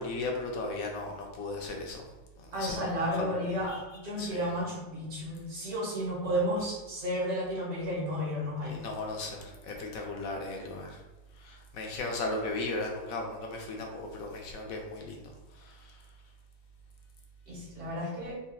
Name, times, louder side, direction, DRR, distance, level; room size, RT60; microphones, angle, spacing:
voice 1, 0.0-2.0 2.4-2.8 3.2-3.4 3.7-3.8 4.2-4.4 6.2-6.3 8.7-11.0 11.4-15.3 15.6-16.0, left 2 dB, 70° left, 1 dB, 0.9 m, -36 dB
voice 2, 2.5-8.9 17.5-18.4, equal, 65° right, -5 dB, 1.6 m, -32 dB
3.8 x 2.4 x 2.6 m, 1.1 s
omnidirectional pair, 1.7 m